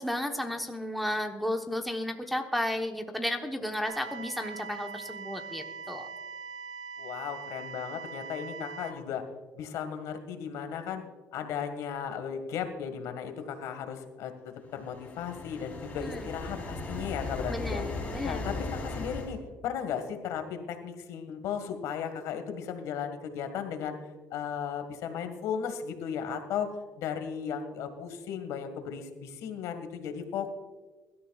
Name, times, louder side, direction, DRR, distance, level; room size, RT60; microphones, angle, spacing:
voice 1, 0.0-6.1 16.0-16.3 17.5-18.6, left 1 dB, ahead, 3 dB, 1.0 m, -33 dB
sound 1, 3.8-8.9, right 5 dB, 75° right, 1.7 m, -42 dB
voice 2, 7.0-9.2 9.5-11.0 11.3-14.3 14.7-17.8 18.2-19.4 19.6-24.0 24.3-26.7 27.0-30.5, left 7 dB, 80° left, 7 dB, 1.7 m, -35 dB
sound 2, 14.7-19.4, left 3 dB, 25° left, 3.7 m, -37 dB
23.0 x 12.5 x 2.4 m, 1.3 s
cardioid pair, 130°, 6 cm